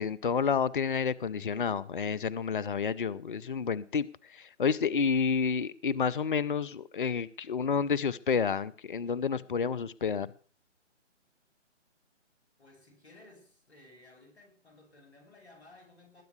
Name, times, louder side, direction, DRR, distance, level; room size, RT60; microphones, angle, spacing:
voice 1, 0.0-10.3, left 6 dB, 45° left, 0.7 m, -30 dB
voice 2, 12.6-16.2, left 2 dB, 60° left, 8.0 m, -57 dB
20.0 x 9.2 x 6.7 m
figure-of-eight pair, 145°, 37 cm